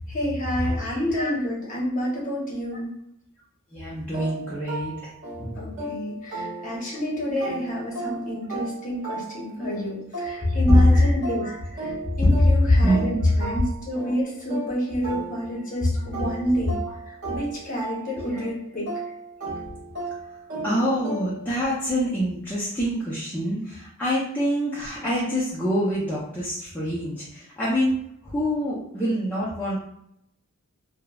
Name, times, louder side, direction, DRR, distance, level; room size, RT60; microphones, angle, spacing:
voice 1, 0.1-2.9 5.6-16.8 17.1-18.9, equal, 35° left, -5 dB, 0.8 m, -29 dB
voice 2, 0.8-1.3 3.7-5.1 5.4-5.7 10.4-11.1 11.4-11.6 12.7-13.6 16.0-16.1 18.3-18.4 20.6-29.8, left 1 dB, 10° left, -9 dB, 0.4 m, -24 dB
sound 1, 4.1-7.0 7.4-15.8 16.1-21.6, right 2 dB, 50° right, 0.9 m, -35 dB
2.9 x 2.0 x 2.2 m, 0.75 s
head